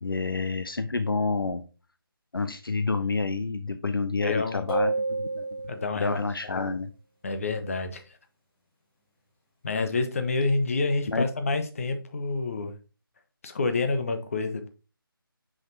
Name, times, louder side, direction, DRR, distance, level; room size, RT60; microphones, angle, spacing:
voice 1, 0.0-1.6 2.3-5.5 6.0-6.9 11.1-11.2, left 4 dB, 70° left, 0.6 m, -29 dB
voice 2, 4.2-4.7 5.7-6.8 7.2-8.0 9.6-12.7 13.4-14.7, left 3 dB, 35° left, 0.9 m, -28 dB
sound 1, 4.7-6.2, right 3 dB, 10° left, 1.2 m, -29 dB
5.9 x 5.3 x 3.3 m
figure-of-eight pair, 155°, 12 cm